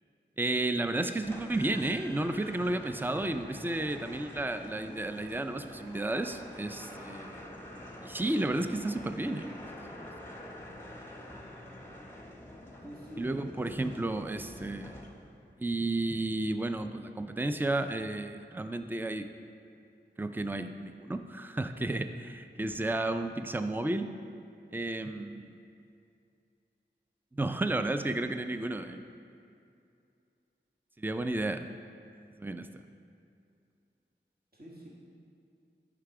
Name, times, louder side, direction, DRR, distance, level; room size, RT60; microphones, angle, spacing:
voice 1, 0.4-7.4 8.0-9.5 9.9-10.1 13.2-14.9 15.6-19.3 20.2-24.1 24.7-25.5 27.3-29.0 31.0-31.7 32.4-32.7, right 2 dB, 10° right, 8 dB, 0.4 m, -32 dB
sound 1, 1.2-15.5, left 1 dB, 10° left, 1.0 m, -46 dB
voice 2, 12.8-13.6 34.5-34.9, equal, 50° right, -5 dB, 1.9 m, -47 dB
10.5 x 4.8 x 4.8 m, 2.5 s
wide cardioid pair, 55°, 20 cm